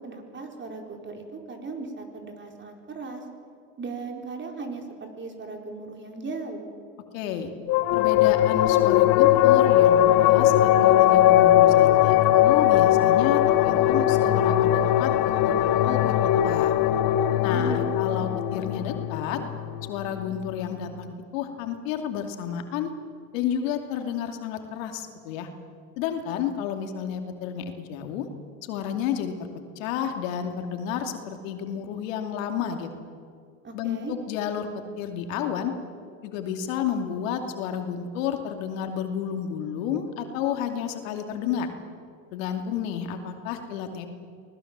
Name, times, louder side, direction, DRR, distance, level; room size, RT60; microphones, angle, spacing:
voice 1, 0.0-3.2 3.8-6.6 17.5-18.1 33.6-34.1, right 4 dB, 30° right, 3 dB, 4.7 m, -37 dB
voice 2, 7.1-7.5 7.9-15.1 15.4-15.6 15.9-16.1 16.4-16.8 17.4-19.4 19.9-22.9 23.3-25.5 26.0-28.3 28.7-29.5 29.8-33.0 33.7-34.0 34.3-35.7 36.2-41.7 42.3-44.1, left 8 dB, 75° left, 5 dB, 2.8 m, -31 dB
sound 1, 7.7-20.5, left 12 dB, 60° left, 1.2 m, -20 dB
25.0 x 19.5 x 7.5 m, 2.2 s
supercardioid pair, 95°, 40 cm